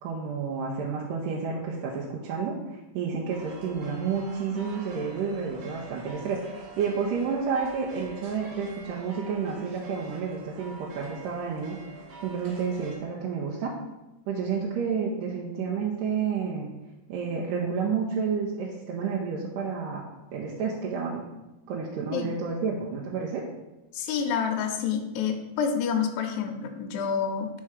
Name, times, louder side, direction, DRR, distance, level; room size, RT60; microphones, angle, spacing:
voice 1, 0.0-11.8 12.2-13.7 14.3-16.7 17.1-20.0 20.3-21.2 21.7-23.4, right 5 dB, 90° right, -4 dB, 2.3 m, -30 dB
sound 1, 3.3-13.0, right 3 dB, 60° right, 1.9 m, -46 dB
voice 2, 23.9-27.5, left 7 dB, 80° left, 4 dB, 1.8 m, -28 dB
4.7 x 4.3 x 4.9 m, 1.0 s
omnidirectional pair, 3.8 m